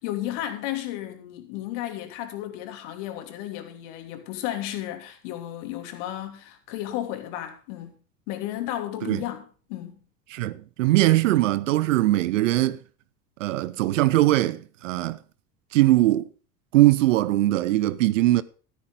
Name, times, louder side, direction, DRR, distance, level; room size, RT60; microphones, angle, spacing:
voice 1, 0.0-8.0 8.3-9.9, left 13 dB, 50° left, 3.1 m, -33 dB
voice 2, 10.3-12.8 13.4-15.2 15.7-16.3 16.7-18.4, right 16 dB, 55° right, 0.9 m, -21 dB
14.0 x 13.0 x 3.5 m
figure-of-eight pair, 80°, 47 cm